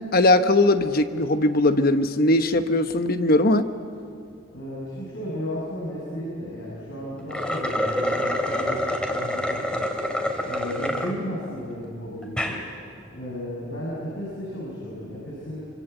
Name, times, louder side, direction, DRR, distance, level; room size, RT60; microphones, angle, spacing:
voice 1, 0.1-3.7, left 2 dB, 50° left, 9 dB, 1.0 m, -20 dB
voice 2, 4.5-9.9 10.4-12.6 13.1-15.7, equal, 75° left, -6 dB, 6.6 m, -34 dB
sound 1, 7.2-11.1 11.6-11.7 12.2-12.6, left 1 dB, 5° left, 2.6 m, -27 dB
25.0 x 25.0 x 8.1 m, 2.4 s
head